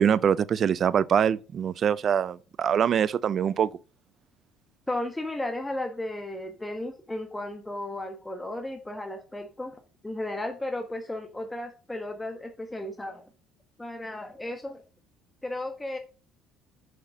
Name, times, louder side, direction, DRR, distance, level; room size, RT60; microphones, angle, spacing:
voice 1, 0.0-3.7, right 8 dB, 50° right, 0.4 m, -24 dB
voice 2, 4.9-9.8 10.0-13.2 13.8-14.8 15.4-16.0, left 1 dB, 15° left, 1.3 m, -34 dB
6.3 x 5.9 x 5.2 m
hypercardioid pair, 65°, 0 cm